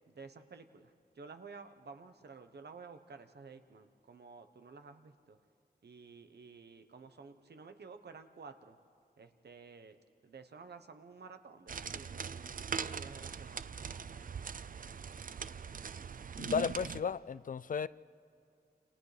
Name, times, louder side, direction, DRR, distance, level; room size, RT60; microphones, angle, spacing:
voice 1, 0.1-5.4 5.8-8.8 9.2-10.0 10.2-13.7, right 4 dB, 80° right, 1.1 m, -52 dB
sound 1, 11.7-17.0, right 6 dB, 55° right, 0.5 m, -41 dB
voice 2, 16.4-17.9, left 6 dB, 55° left, 0.4 m, -34 dB
29.5 x 28.5 x 3.4 m
wide cardioid pair, 110°, 17 cm